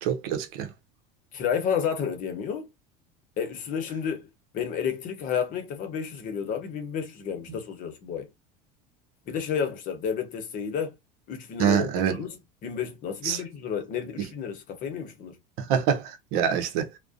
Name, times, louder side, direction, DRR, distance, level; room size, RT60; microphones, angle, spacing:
voice 1, 0.0-0.7 11.6-12.2 13.2-13.4 15.6-16.9, right 8 dB, 75° right, 0.7 m, -25 dB
voice 2, 1.3-2.7 3.4-4.3 4.5-8.3 9.3-10.9 11.3-15.4, left 7 dB, 45° left, 0.8 m, -31 dB
2.4 x 2.1 x 2.4 m
supercardioid pair, 120°, 18 cm